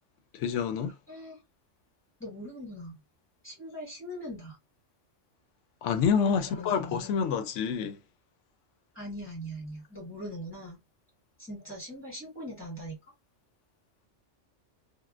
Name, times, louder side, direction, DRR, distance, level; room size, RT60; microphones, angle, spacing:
voice 1, 0.3-0.9 5.8-8.0, left 6 dB, 80° left, 0.9 m, -27 dB
voice 2, 1.1-1.4 2.2-3.0 3.4-4.6 6.2-7.2 8.9-10.8 11.4-13.0, equal, 10° left, 1.4 m, -41 dB
3.2 x 2.4 x 2.4 m
omnidirectional pair, 1.2 m